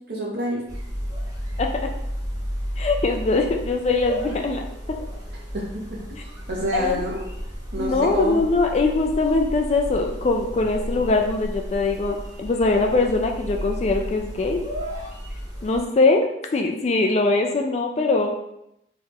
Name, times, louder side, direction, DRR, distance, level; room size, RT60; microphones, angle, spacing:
voice 1, 0.1-0.6 5.5-6.0 6.5-7.2 7.7-8.4, right 1 dB, 55° right, -3 dB, 1.0 m, -27 dB
sound 1, 0.7-15.8, equal, 15° right, 1.1 m, -33 dB
voice 2, 2.8-4.6 6.7-7.0 7.8-14.6 15.6-18.3, left 3 dB, 35° left, 3 dB, 0.3 m, -22 dB
3.0 x 2.4 x 4.3 m, 0.81 s
head